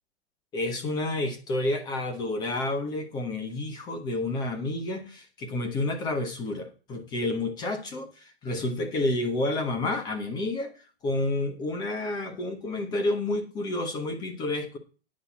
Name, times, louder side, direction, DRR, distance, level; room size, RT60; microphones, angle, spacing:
voice 1, 0.5-10.7 11.0-14.8, left 2 dB, 10° left, 7 dB, 1.2 m, -30 dB
9.8 x 5.4 x 7.2 m, 0.35 s
hypercardioid pair, 175°, 32 cm